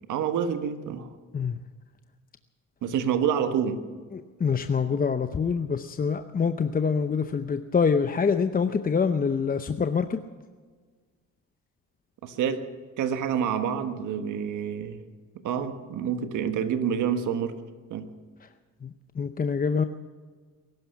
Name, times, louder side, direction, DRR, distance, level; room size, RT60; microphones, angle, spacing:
voice 1, 0.1-1.1 2.8-3.8 12.2-12.6 13.0-15.0 15.4-17.5 17.9-18.1, right 8 dB, 80° right, 8 dB, 1.5 m, -27 dB
voice 2, 4.1-10.2 18.8-19.8, left 6 dB, 30° left, 9 dB, 0.7 m, -25 dB
20.5 x 12.0 x 5.8 m, 1.5 s
cardioid pair, 90°, 30 cm